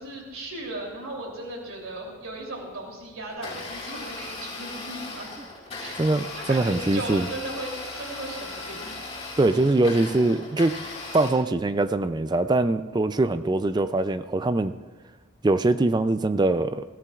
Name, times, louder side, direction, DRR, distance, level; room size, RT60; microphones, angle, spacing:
voice 1, 0.0-5.3 5.8-6.0 6.3-7.7 7.9-8.9, right 2 dB, 80° right, -1 dB, 3.1 m, -36 dB
Domestic sounds home sounds, 3.3-11.3, left 3 dB, 30° left, 4.5 m, -37 dB
voice 2, 6.0-7.3 9.4-10.8 11.1-14.7 15.4-16.8, right 2 dB, 20° right, 12 dB, 0.3 m, -22 dB
22.0 x 16.5 x 2.4 m, 1.4 s
head